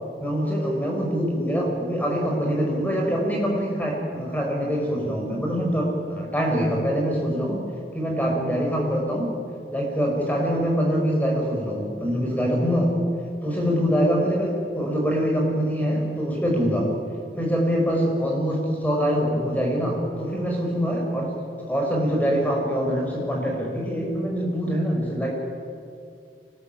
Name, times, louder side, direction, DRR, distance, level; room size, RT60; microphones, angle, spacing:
voice 1, 0.2-7.6 7.9-9.4 9.7-12.9 13.4-16.9 17.4-21.3 21.6-25.3, equal, 10° left, 0 dB, 5.7 m, -24 dB
25.0 x 20.0 x 8.9 m, 2.4 s
head